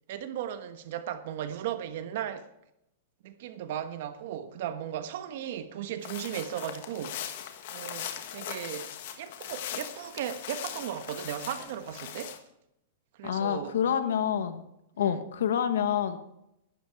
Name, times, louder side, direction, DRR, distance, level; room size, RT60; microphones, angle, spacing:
voice 1, 0.1-2.5 3.2-7.2 7.7-12.3 13.2-13.8 15.0-15.2, right 10 dB, 60° right, 1.2 m, -36 dB
sound 1, 6.0-12.4, left 10 dB, 60° left, 1.4 m, -40 dB
voice 2, 13.2-14.6 15.0-16.2, left 8 dB, 90° left, 1.3 m, -27 dB
11.5 x 10.0 x 4.7 m
supercardioid pair, 155°, 0 cm